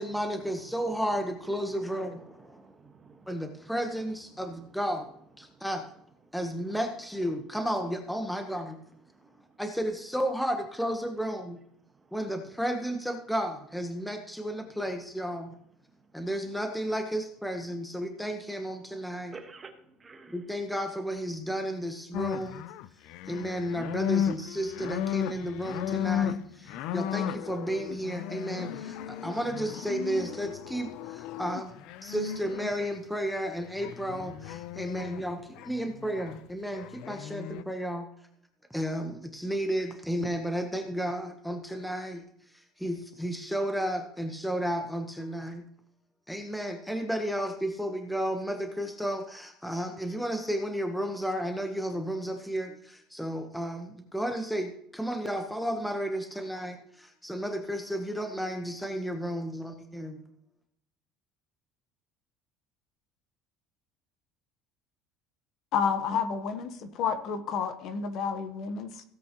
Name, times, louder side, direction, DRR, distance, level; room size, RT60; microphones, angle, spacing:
voice 1, 0.0-2.6 3.3-5.1 5.4-5.8 6.3-8.8 9.6-11.6 12.1-15.6 16.1-19.3 20.3-22.6 23.3-31.7 32.0-38.1 38.7-42.2 42.5-45.6 46.3-60.2, equal, ahead, 4 dB, 1.0 m, -33 dB
voice 2, 2.3-3.7 4.4-4.8 5.4-5.6 6.3-6.4 9.1-9.6 12.0-12.2 19.0-20.5, right 4 dB, 20° right, 5 dB, 1.4 m, -52 dB
sound 1, 22.1-32.9 33.8-35.2 35.6-36.4 36.7-37.6, left 10 dB, 65° left, 0.5 m, -35 dB
voice 3, 65.7-69.0, left 6 dB, 50° left, 10 dB, 1.1 m, -30 dB
16.5 x 8.5 x 3.0 m, 0.70 s
cardioid pair, 155°, 0 cm